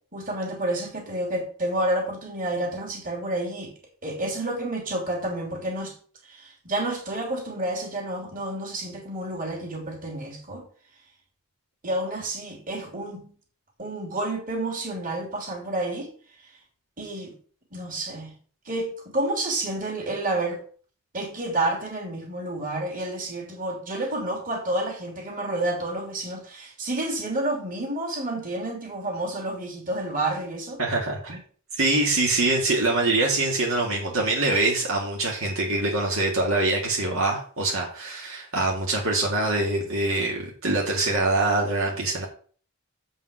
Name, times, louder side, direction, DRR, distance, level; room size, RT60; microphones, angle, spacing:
voice 1, 0.1-3.7 4.0-5.9 6.2-10.6 11.8-13.3 13.8-16.1 17.0-17.3 17.7-18.3 18.6-20.6 21.1-30.8, right 1 dB, 35° right, 2.9 m, -29 dB
voice 2, 30.8-31.4 31.7-42.3, right 2 dB, 65° right, 2.0 m, -24 dB
7.6 x 5.4 x 6.3 m
head